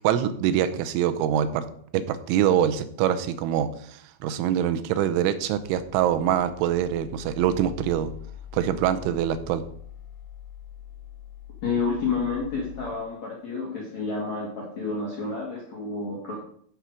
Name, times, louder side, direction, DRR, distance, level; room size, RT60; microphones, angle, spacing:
voice 1, 0.0-1.6 1.9-8.1 8.5-9.6, right 10 dB, 90° right, 10 dB, 3.1 m, -24 dB
sound 1, 5.4-12.9, left 12 dB, 80° left, 3.1 m, -43 dB
voice 2, 11.6-16.4, left 4 dB, 50° left, -3 dB, 2.4 m, -30 dB
14.0 x 5.8 x 4.7 m, 0.62 s
omnidirectional pair, 5.4 m